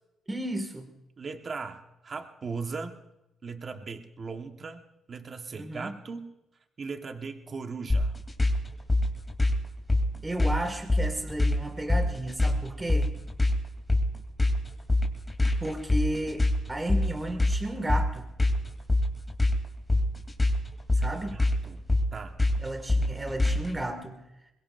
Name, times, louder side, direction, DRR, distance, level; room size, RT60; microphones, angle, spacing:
voice 1, 0.3-0.9 5.6-5.9 10.2-13.1 15.6-18.3 20.9-21.4 22.6-24.2, right 1 dB, 15° right, 5 dB, 2.0 m, -33 dB
voice 2, 1.2-3.0 3.4-4.8 5.1-6.3 6.8-8.1 21.0-21.8 22.1-22.4, right 4 dB, 45° right, 5 dB, 1.3 m, -38 dB
sound 1, 7.9-23.8, left 2 dB, 15° left, 3.1 m, -25 dB
23.0 x 21.5 x 2.6 m, 0.92 s
cardioid pair, 90°, 0 cm